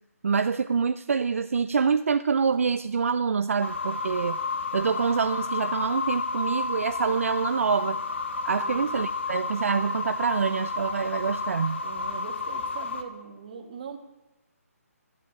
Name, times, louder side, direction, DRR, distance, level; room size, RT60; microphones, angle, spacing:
voice 1, 0.2-4.4 4.7-8.0 8.4-11.8, right 5 dB, 60° right, 12 dB, 0.4 m, -26 dB
sound 1, 3.6-13.0, left 3 dB, 50° left, 1.4 m, -31 dB
voice 2, 11.8-14.0, right 6 dB, 30° right, 4 dB, 1.4 m, -41 dB
13.5 x 8.2 x 8.6 m, 1.0 s
hypercardioid pair, 175°, 8 cm